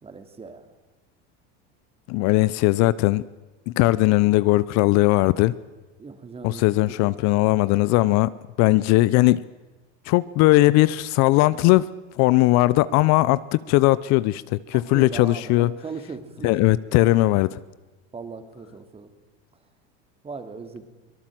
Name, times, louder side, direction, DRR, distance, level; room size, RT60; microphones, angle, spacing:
voice 1, 0.0-0.6 6.0-7.1 14.7-17.1 18.1-19.1 20.2-20.9, right 4 dB, 20° right, 9 dB, 2.5 m, -39 dB
voice 2, 2.1-3.2 3.7-5.5 6.4-8.3 8.6-9.4 10.1-11.9 12.2-15.7 16.4-17.6, left 18 dB, 55° left, 18 dB, 0.7 m, -19 dB
24.5 x 18.5 x 7.7 m, 1.2 s
supercardioid pair, 125°, 32 cm